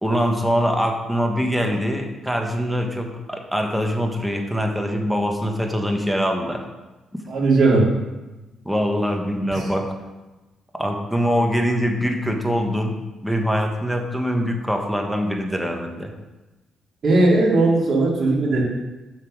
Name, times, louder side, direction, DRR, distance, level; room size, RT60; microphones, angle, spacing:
voice 1, 0.0-6.6 8.6-9.9 10.7-12.9 13.2-16.1, equal, ahead, 2 dB, 1.4 m, -23 dB
voice 2, 7.3-7.9 9.5-9.7 17.0-18.6, right 2 dB, 50° right, -4 dB, 3.2 m, -18 dB
7.6 x 5.6 x 6.5 m, 1.1 s
cardioid pair, 90°, 0 cm